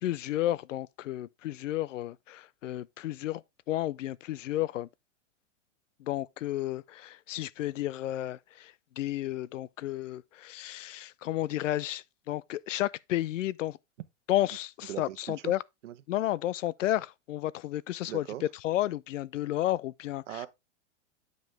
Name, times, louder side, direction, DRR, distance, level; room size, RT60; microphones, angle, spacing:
voice 1, 0.0-4.9 6.0-13.8 14.3-15.6 16.1-20.4, left 14 dB, 90° left, 0.6 m, -32 dB
voice 2, 14.9-15.5 15.8-15.9 18.0-18.4 20.3-20.5, right 13 dB, 75° right, 1.1 m, -39 dB
9.1 x 5.4 x 3.3 m
supercardioid pair, 150°, 37 cm